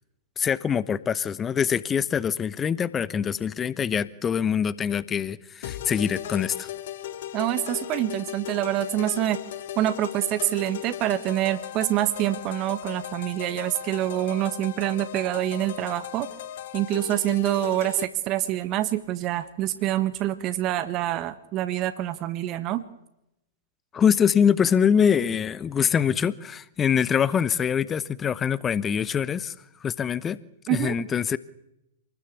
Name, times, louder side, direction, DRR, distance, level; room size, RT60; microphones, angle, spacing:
voice 1, 0.4-6.7 23.9-29.5 29.8-30.4 30.7-31.4, left 7 dB, 20° left, 1.0 m, -24 dB
sound 1, 5.6-18.1, left 12 dB, 55° left, 2.1 m, -37 dB
voice 2, 7.3-9.4 9.7-16.3 16.7-22.8 30.7-30.9, right 14 dB, 35° right, 1.5 m, -26 dB
27.5 x 20.5 x 8.4 m
figure-of-eight pair, 105°, 0 cm